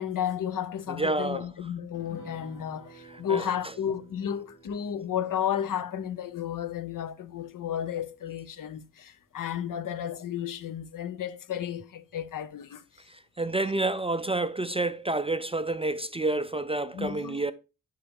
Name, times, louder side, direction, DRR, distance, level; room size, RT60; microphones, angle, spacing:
voice 1, 0.0-12.8 16.9-17.4, left 9 dB, 70° left, 0.7 m, -33 dB
voice 2, 1.0-1.4 3.3-3.4 13.1-17.5, right 2 dB, 20° right, 0.3 m, -29 dB
sound 1, 1.9-8.7 9.0-9.1 9.5-9.6, equal, 35° left, 2.9 m, -54 dB
9.9 x 3.7 x 3.5 m
cardioid pair, 100°, 34 cm